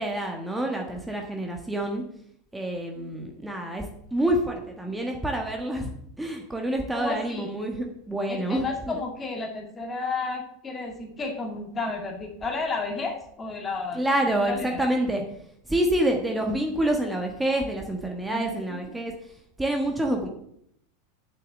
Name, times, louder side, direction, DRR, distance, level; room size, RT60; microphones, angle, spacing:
voice 1, 0.0-2.0 2.5-5.9 6.2-9.0 13.9-15.2 15.6-19.3 19.6-20.3, right 1 dB, 5° right, 2 dB, 1.5 m, -27 dB
voice 2, 6.9-7.5 8.3-14.0 14.4-14.9 18.3-18.8, left 3 dB, 20° left, 2 dB, 2.1 m, -32 dB
7.4 x 6.5 x 7.4 m, 0.71 s
figure-of-eight pair, 85°, 0 cm